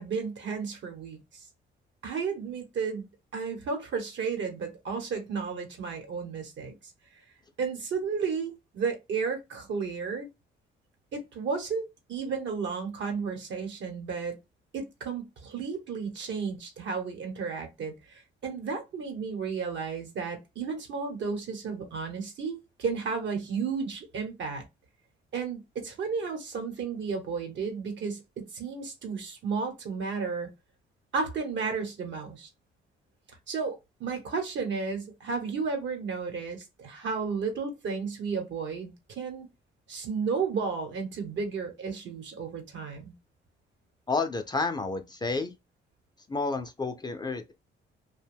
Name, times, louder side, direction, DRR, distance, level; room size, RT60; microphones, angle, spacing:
voice 1, 0.0-1.5 2.0-3.1 3.3-6.8 7.6-10.3 11.1-14.4 14.7-24.6 25.3-30.5 31.1-32.5 33.5-39.5 39.9-43.1, right 5 dB, 70° right, 1.0 m, -33 dB
voice 2, 44.1-45.5 46.3-47.5, left 3 dB, 20° left, 0.5 m, -30 dB
2.5 x 2.2 x 3.4 m
cardioid pair, 90°, 20 cm